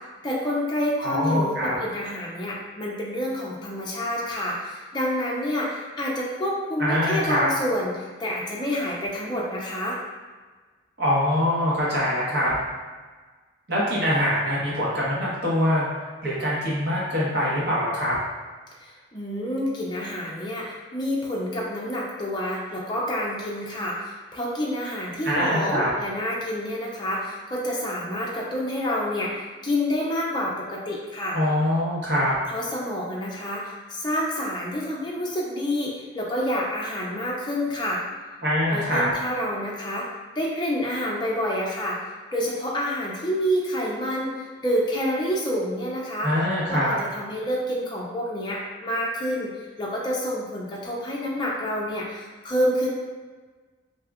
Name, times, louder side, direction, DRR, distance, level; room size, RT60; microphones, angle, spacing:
voice 1, 0.2-10.0 18.8-31.4 32.5-38.0 38.7-40.1 40.4-42.0 42.3-46.3 46.7-49.5 49.8-52.9, equal, 25° left, -4 dB, 0.5 m, -28 dB
voice 2, 1.0-1.7 6.8-7.5 11.0-12.5 13.7-15.8 16.2-18.2 25.2-25.9 31.3-32.3 38.4-39.1 46.2-46.9, equal, 60° right, -7 dB, 1.0 m, -23 dB
2.7 x 2.3 x 3.5 m, 1.4 s
head